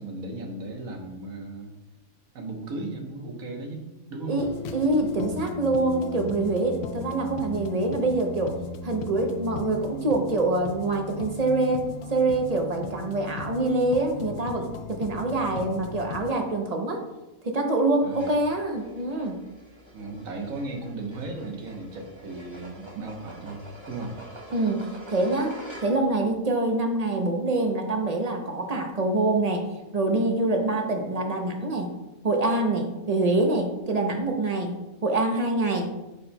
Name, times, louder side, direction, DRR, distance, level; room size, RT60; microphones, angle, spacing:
voice 1, 0.0-1.7 2.3-4.5 18.0-18.4 19.9-24.2, right 2 dB, 75° right, 2 dB, 1.4 m, -36 dB
voice 2, 4.3-8.6 8.8-17.0 17.4-19.4 24.5-31.9 32.2-35.9, right 2 dB, 45° right, 3 dB, 0.5 m, -25 dB
sound 1, 4.4-16.3, left 4 dB, 65° left, 0.7 m, -37 dB
sound 2, 18.1-26.2, equal, 25° right, 0.9 m, -46 dB
10.5 x 4.3 x 2.2 m, 1.0 s
omnidirectional pair, 1.5 m